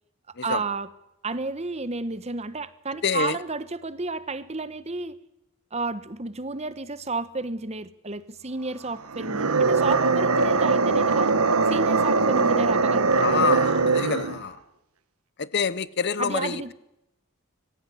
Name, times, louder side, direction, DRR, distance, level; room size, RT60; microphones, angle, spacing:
voice 1, 0.4-0.9 1.2-5.2 5.7-11.3 11.7-13.6 16.2-16.7, right 3 dB, 30° right, 1.1 m, -31 dB
voice 2, 3.0-3.4 13.2-14.6 15.4-16.7, left 5 dB, 50° left, 0.8 m, -26 dB
sound 1, 9.1-14.4, right 4 dB, 90° right, 1.4 m, -21 dB
23.5 x 15.0 x 9.9 m
head